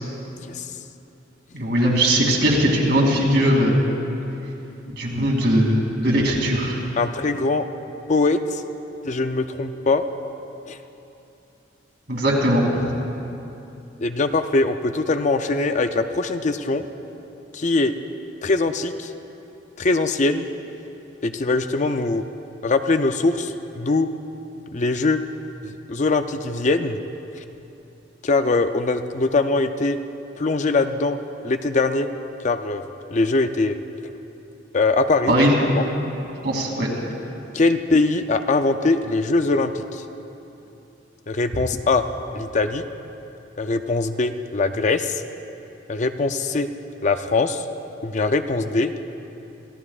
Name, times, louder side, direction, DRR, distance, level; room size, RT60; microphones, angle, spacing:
voice 1, 1.5-3.8 5.0-6.8 12.1-12.6 35.3-35.5 36.4-36.9, equal, 60° right, -2 dB, 2.8 m, -19 dB
voice 2, 7.0-7.7 8.1-8.6 9.0-10.0 10.7-10.8 14.0-16.8 17.5-17.9 18.4-19.1 19.8-20.5 21.2-22.2 22.6-24.1 24.7-25.2 25.6-27.0 27.4-27.5 28.2-30.0 30.4-31.2 31.4-32.1 32.4-33.8 34.7-35.3 35.7-35.8 37.5-40.0 41.3-42.0 42.3-42.8 43.6-45.2 45.9-46.7 47.0-47.6 48.0-49.0, left 3 dB, 40° left, 8 dB, 0.5 m, -22 dB
25.5 x 16.0 x 2.4 m, 2.9 s
head